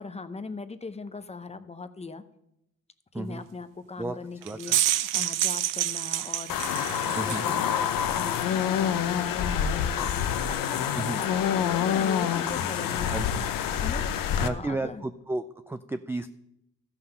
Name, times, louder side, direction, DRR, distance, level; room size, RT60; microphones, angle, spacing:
voice 1, 0.0-2.2 3.1-15.0, left 4 dB, 20° left, 11 dB, 0.7 m, -40 dB
voice 2, 3.1-3.4 4.0-4.2 4.4-4.8 7.2-7.5 10.9-11.2 13.1-13.5 14.4-16.3, right 2 dB, 10° right, 10 dB, 0.3 m, -33 dB
sound 1, 4.4-7.5, right 13 dB, 70° right, 0.5 m, -27 dB
sound 2, 6.5-14.5, left 9 dB, 85° left, 0.7 m, -27 dB
13.5 x 5.8 x 5.6 m, 0.82 s
cardioid pair, 95°, 33 cm